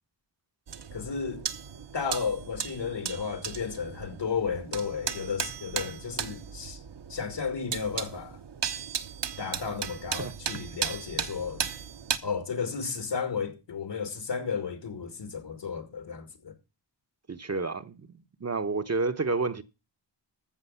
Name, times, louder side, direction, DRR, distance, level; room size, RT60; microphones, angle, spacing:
sound 1, 0.7-12.2, right 7 dB, 65° right, 1.1 m, -36 dB
voice 1, 0.9-1.5 1.9-6.8 7.1-8.4 9.4-11.7 12.2-16.5, left 6 dB, 70° left, 2.6 m, -33 dB
voice 2, 17.3-18.1 18.4-19.6, right 3 dB, 35° right, 0.9 m, -29 dB
14.5 x 6.4 x 5.7 m
wide cardioid pair, 130°, 44 cm